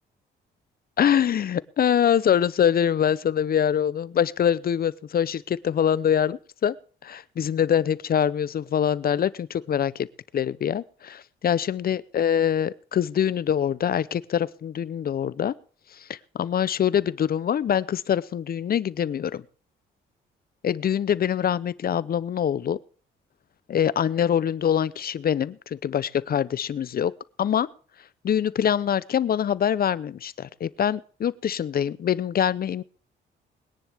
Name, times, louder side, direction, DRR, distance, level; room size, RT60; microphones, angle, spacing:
voice 1, 1.0-6.8 7.0-10.1 10.3-15.5 15.9-19.4 20.6-22.8 23.7-27.7 28.2-32.8, left 9 dB, 50° left, 19 dB, 0.7 m, -24 dB
22.0 x 10.0 x 3.5 m, 0.42 s
cardioid pair, 90°, 20 cm